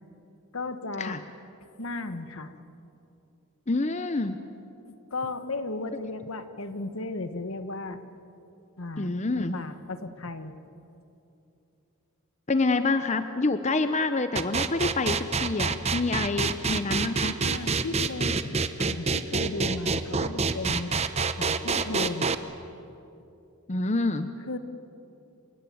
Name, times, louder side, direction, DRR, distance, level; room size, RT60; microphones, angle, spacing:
voice 1, 0.5-1.2 1.8-2.5 4.9-8.0 8.8-10.5 17.4-18.4 18.8-20.9 21.3-22.3 24.5-24.6, left 2 dB, 70° left, 10 dB, 1.4 m, -35 dB
voice 2, 3.7-4.4 9.0-9.6 12.5-17.4 23.7-24.3, left 3 dB, 30° left, 10 dB, 0.7 m, -27 dB
sound 1, 14.4-22.4, right 4 dB, 30° right, 0.8 m, -26 dB
28.0 x 16.5 x 9.4 m, 2.8 s
head